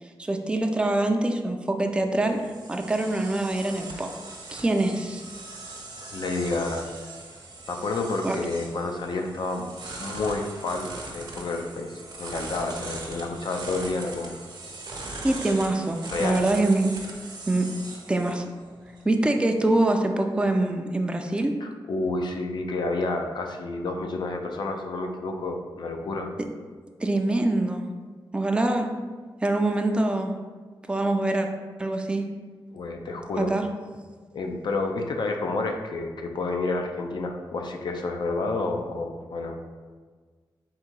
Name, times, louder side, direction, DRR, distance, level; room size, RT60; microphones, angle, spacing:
voice 1, 0.2-2.4 2.7-4.1 4.5-5.2 8.2-8.4 15.2-16.9 17.5-17.7 18.1-18.4 19.0-21.5 27.0-27.9 28.3-28.9 29.4-30.3 30.9-31.5 31.8-32.3 33.4-33.6, right 2 dB, 10° right, 4 dB, 0.4 m, -24 dB
sound 1, 1.8-19.0, right 2 dB, 55° right, 0.8 m, -40 dB
voice 2, 6.1-6.9 7.7-9.7 10.0-14.3 16.1-16.4 21.6-26.3 32.7-33.5 34.3-39.6, left 3 dB, 65° left, 3 dB, 0.5 m, -30 dB
3.7 x 2.7 x 4.5 m, 1.5 s
wide cardioid pair, 90°, 8 cm